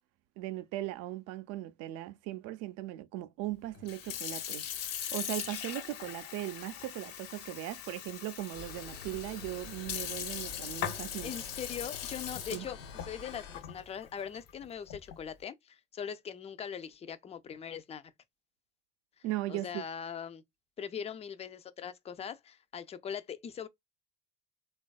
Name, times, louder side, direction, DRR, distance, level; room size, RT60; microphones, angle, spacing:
voice 1, 0.4-4.6 5.1-11.4 12.5-12.7 19.2-19.8, right 15 dB, 60° right, 0.5 m, -38 dB
Sink (filling or washing) / Fill (with liquid), 3.7-15.3, left 9 dB, 55° left, 0.7 m, -40 dB
sound 1, 8.5-13.6, left 5 dB, 90° left, 1.1 m, -48 dB
voice 2, 11.2-12.8 13.1-18.0 19.5-20.4 20.8-23.7, left 8 dB, 20° left, 0.3 m, -41 dB
3.2 x 2.3 x 2.3 m
hypercardioid pair, 80°, 29 cm